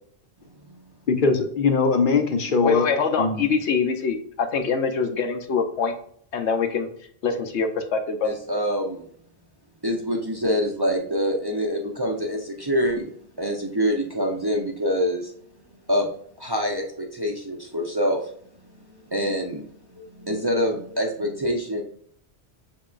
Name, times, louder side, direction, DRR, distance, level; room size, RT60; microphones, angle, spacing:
voice 1, 1.1-2.9 3.2-3.5, left 4 dB, 55° left, 6 dB, 0.8 m, -21 dB
voice 2, 2.6-5.9 6.3-6.9 7.2-8.4, left 5 dB, 85° left, 6 dB, 1.0 m, -24 dB
voice 3, 8.2-9.1 9.8-15.3 15.9-16.1 16.4-18.3 19.0-21.8, equal, 25° right, -1 dB, 0.6 m, -25 dB
5.7 x 3.7 x 2.4 m, 0.62 s
omnidirectional pair, 1.1 m